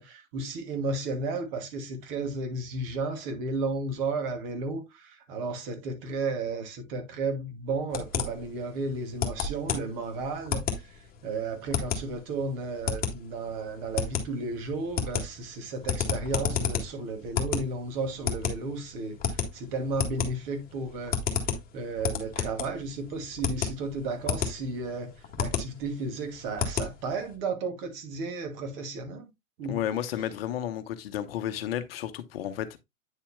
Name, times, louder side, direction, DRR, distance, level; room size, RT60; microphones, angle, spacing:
voice 1, 0.0-10.6 11.2-19.2 19.5-21.2 21.7-29.3 29.6-29.8, right 3 dB, 40° right, 2.4 m, -33 dB
sound 1, 7.9-27.3, left 7 dB, 20° left, 1.9 m, -32 dB
voice 2, 29.7-32.8, left 11 dB, 45° left, 1.0 m, -32 dB
9.1 x 7.1 x 2.2 m
figure-of-eight pair, 110°, 40 cm